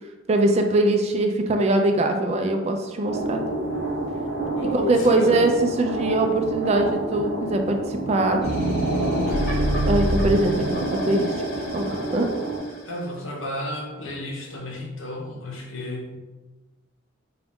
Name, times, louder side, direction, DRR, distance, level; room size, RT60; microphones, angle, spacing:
voice 1, 0.3-3.4 4.7-5.5 5.8-8.4 9.9-11.3 11.7-12.3, right 2 dB, 30° right, 4 dB, 0.3 m, -22 dB
sound 1, 3.1-12.6, right 2 dB, 60° right, 0.8 m, -29 dB
voice 2, 4.5-5.4 12.8-16.2, left 1 dB, 75° left, -1 dB, 0.9 m, -32 dB
sound 2, 8.4-12.8, equal, 50° left, 1.0 m, -27 dB
3.9 x 2.4 x 3.5 m, 1.2 s
head